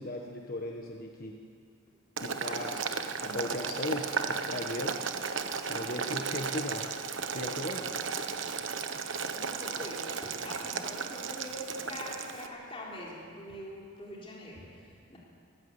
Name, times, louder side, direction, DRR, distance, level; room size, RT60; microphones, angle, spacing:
voice 1, 0.0-1.4 2.2-3.0 3.2-5.0 5.7-6.9 7.3-7.9, left 1 dB, 45° left, 0 dB, 1.4 m, -37 dB
Boiling, 2.2-12.5, right 5 dB, 70° right, 1.1 m, -35 dB
voice 2, 9.0-15.2, left 1 dB, 25° left, -4 dB, 3.8 m, -43 dB
22.5 x 14.5 x 8.1 m, 2.2 s
head